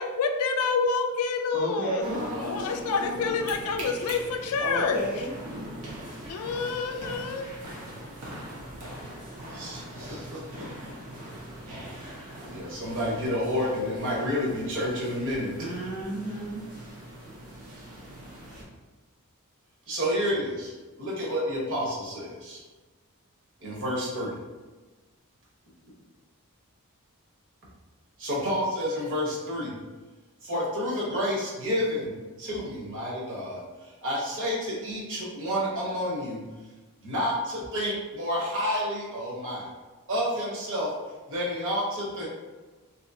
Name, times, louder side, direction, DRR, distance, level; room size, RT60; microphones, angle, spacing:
voice 1, 0.0-2.0 2.4-5.0 6.3-7.5, left 4 dB, 75° left, 5 dB, 0.4 m, -28 dB
voice 2, 1.5-2.2 4.6-5.4 15.6-16.6, right 2 dB, 35° right, -5 dB, 0.5 m, -33 dB
sound 1, 2.0-18.6, equal, 80° right, 0.9 m, -40 dB
voice 3, 9.5-10.4 12.4-15.7 19.9-22.6 23.6-24.3 28.2-29.7 30.4-36.4 37.0-39.7 40.1-40.9 41.3-42.3, equal, 60° right, -5 dB, 1.1 m, -30 dB
3.0 x 2.8 x 2.7 m, 1.3 s
head